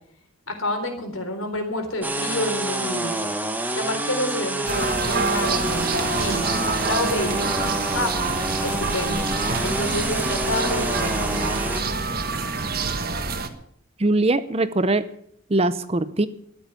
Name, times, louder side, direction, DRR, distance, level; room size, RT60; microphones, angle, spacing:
voice 1, 0.5-3.2 3.7-8.1 8.6-9.3 9.6-11.7, left 1 dB, 75° left, 5 dB, 3.8 m, -29 dB
sound 1, 2.0-11.8, right 1 dB, 10° right, 1.2 m, -28 dB
sound 2, 4.7-13.5, right 4 dB, 45° right, 1.4 m, -26 dB
voice 2, 14.0-15.1 15.5-16.3, right 2 dB, 30° right, 14 dB, 0.6 m, -21 dB
13.5 x 9.5 x 9.2 m, 0.66 s
head